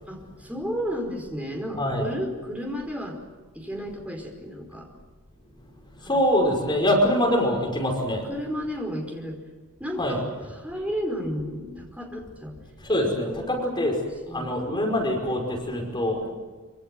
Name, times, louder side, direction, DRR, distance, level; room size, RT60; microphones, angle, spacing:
voice 1, 0.1-3.2 3.5-4.9 6.0-6.1 8.3-9.4 9.8-10.2 10.6-12.6 13.3-13.7 14.3-14.8 16.2-16.3, equal, 5° right, 2 dB, 4.9 m, -33 dB
voice 2, 1.8-2.1 6.0-8.3 10.0-10.2 12.9-13.9 14.3-16.2, equal, 20° left, 0 dB, 5.6 m, -24 dB
26.0 x 25.0 x 7.8 m, 1.3 s
head